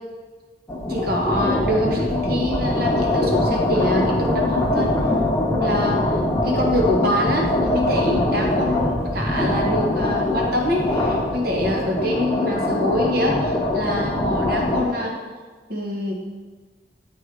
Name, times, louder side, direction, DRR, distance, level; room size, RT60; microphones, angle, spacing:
sound 1, 0.7-14.9, left 1 dB, 15° left, 0.9 m, -22 dB
voice 1, 0.9-4.9 5.6-15.2 15.7-16.1, left 1 dB, 60° right, -1 dB, 1.3 m, -25 dB
sound 2, 2.6-11.1, right 2 dB, 75° right, 0.9 m, -39 dB
7.8 x 4.5 x 4.8 m, 1.4 s
head